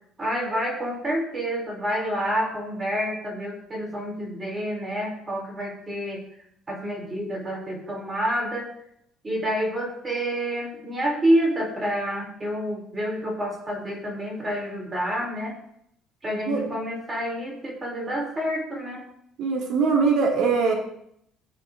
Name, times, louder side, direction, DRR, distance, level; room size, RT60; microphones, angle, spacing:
voice 1, 0.2-6.2 6.7-8.7 9.2-15.6 16.2-19.0, equal, 20° right, -1 dB, 5.1 m, -28 dB
voice 2, 19.4-20.7, right 5 dB, 70° right, -2 dB, 4.0 m, -22 dB
20.0 x 7.7 x 3.3 m, 0.70 s
cardioid pair, 135°, 0 cm